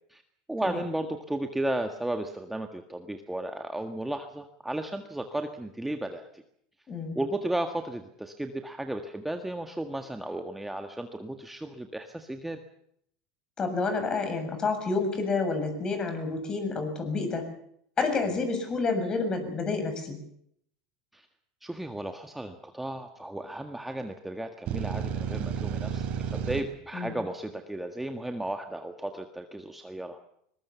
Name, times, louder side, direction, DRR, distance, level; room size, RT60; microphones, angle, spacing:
voice 1, 0.5-6.4 7.1-12.6 21.1-21.3 21.6-30.2, right 1 dB, 5° right, 6 dB, 1.7 m, -34 dB
voice 2, 6.9-7.2 13.6-17.5 18.0-20.2 26.9-27.1, left 4 dB, 30° left, 7 dB, 7.3 m, -29 dB
sound 1, 24.7-26.6, right 8 dB, 50° right, 5.2 m, -31 dB
21.5 x 21.0 x 7.1 m, 0.70 s
supercardioid pair, 110°, 3 cm